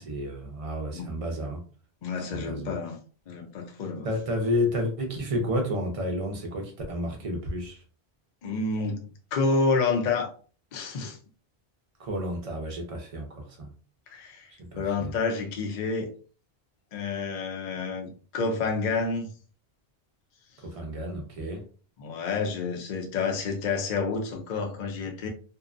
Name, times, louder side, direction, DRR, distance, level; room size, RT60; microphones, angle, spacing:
voice 1, 0.0-1.6 2.3-2.8 4.0-7.8 12.0-13.7 14.7-15.1 20.6-21.6, left 1 dB, 40° right, 0.6 m, -31 dB
voice 2, 2.0-3.0 3.3-4.1 8.4-10.3 10.7-11.2 14.1-14.5 14.7-16.1 16.9-19.3 22.0-25.3, left 4 dB, 55° left, 0.6 m, -29 dB
2.7 x 2.1 x 2.4 m
omnidirectional pair, 1.1 m